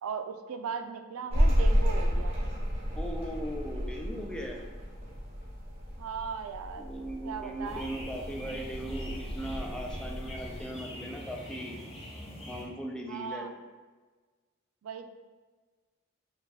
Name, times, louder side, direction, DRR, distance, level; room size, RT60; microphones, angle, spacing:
voice 1, 0.0-2.4 6.0-7.0 7.2-7.9 13.1-13.5 14.8-15.1, right 6 dB, 85° right, 7 dB, 0.4 m, -37 dB
sound 1, 1.3-10.6, equal, 30° right, 1.0 m, -31 dB
voice 2, 2.9-4.7 6.8-11.8 12.5-13.5, right 1 dB, 5° left, 0 dB, 0.4 m, -38 dB
sound 2, 7.6-12.6, equal, 30° left, 0.8 m, -43 dB
4.7 x 2.3 x 3.4 m, 1.4 s
head